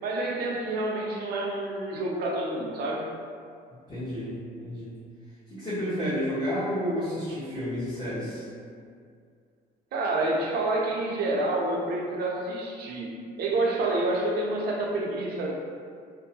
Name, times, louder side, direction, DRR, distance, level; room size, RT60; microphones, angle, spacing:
voice 1, 0.0-3.0 9.9-15.5, right 2 dB, 65° right, -2 dB, 0.5 m, -28 dB
voice 2, 3.9-4.3 4.6-4.9 5.5-8.4, equal, 25° left, -15 dB, 0.9 m, -30 dB
2.6 x 2.1 x 2.7 m, 2.3 s
cardioid pair, 110°, 17 cm